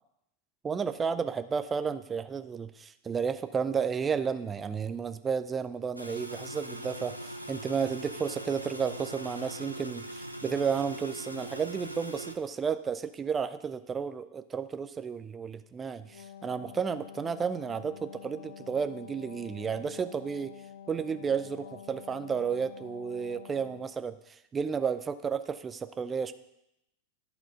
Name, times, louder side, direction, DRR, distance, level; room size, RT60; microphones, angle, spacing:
voice 1, 0.6-20.5 20.9-26.3, right 6 dB, 20° right, 11 dB, 0.5 m, -32 dB
sound 1, 6.0-12.4, right 1 dB, 90° right, 0.6 m, -41 dB
Wind instrument woodwind instrument, 16.0-24.0, left 9 dB, 60° left, 0.6 m, -48 dB
11.5 x 4.4 x 5.5 m, 0.84 s
figure-of-eight pair, 90°, 0 cm